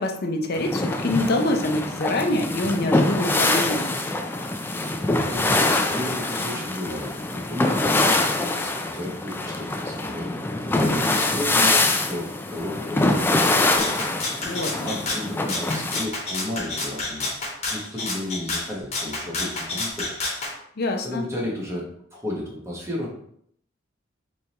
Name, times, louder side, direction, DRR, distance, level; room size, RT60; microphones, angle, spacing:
voice 1, 0.0-4.0 14.4-14.9 20.8-21.2, left 1 dB, 55° left, 4 dB, 0.6 m, -25 dB
sound 1, 0.5-16.0, left 2 dB, 10° left, 0.3 m, -24 dB
voice 2, 5.3-7.8 8.6-10.4 10.6-13.9 14.8-17.4 17.7-20.1 21.0-23.2, left 1 dB, 15° right, -2 dB, 1.1 m, -33 dB
Rattle (instrument), 13.8-20.5, left 2 dB, 35° left, 1.1 m, -30 dB
4.2 x 3.5 x 3.0 m, 0.67 s
head